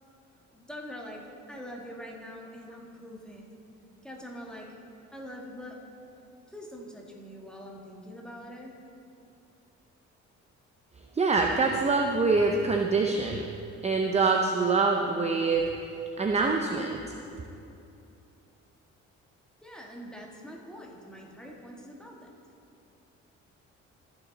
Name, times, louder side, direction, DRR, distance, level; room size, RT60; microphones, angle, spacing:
voice 1, 0.5-3.5 4.0-4.7 5.1-5.8 6.5-8.7 19.6-22.3, equal, 5° left, -2 dB, 1.6 m, -44 dB
voice 2, 11.2-13.5 13.8-15.6 16.2-17.1, right 4 dB, 20° right, 2 dB, 0.6 m, -25 dB
14.5 x 6.0 x 4.0 m, 2.7 s
cardioid pair, 90°, 30 cm